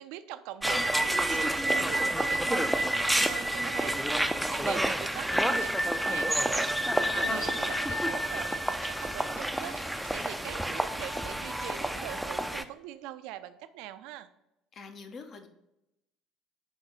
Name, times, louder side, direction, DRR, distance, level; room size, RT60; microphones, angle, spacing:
voice 1, 0.0-14.3, right 13 dB, 60° right, 11 dB, 0.5 m, -42 dB
sound 1, 0.6-12.6, right 1 dB, ahead, 0.6 m, -29 dB
Dog, 7.1-12.4, right 2 dB, 85° right, 0.8 m, -50 dB
voice 2, 14.7-15.5, left 4 dB, 45° left, 6 dB, 1.1 m, -45 dB
10.0 x 3.5 x 5.3 m, 0.88 s
figure-of-eight pair, 55°, 0 cm